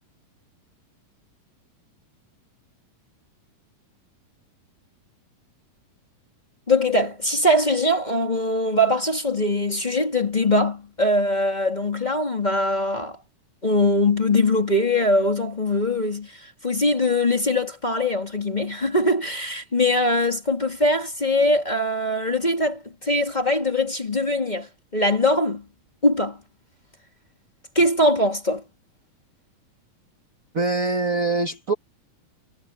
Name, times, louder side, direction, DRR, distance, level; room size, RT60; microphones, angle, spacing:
voice 1, 6.7-13.2 13.6-25.6 26.0-26.4 27.7-28.6, left 1 dB, 15° left, 1.7 m, -22 dB
voice 2, 30.5-31.7, right 3 dB, 90° right, 0.7 m, -23 dB
omnidirectional pair, 3.9 m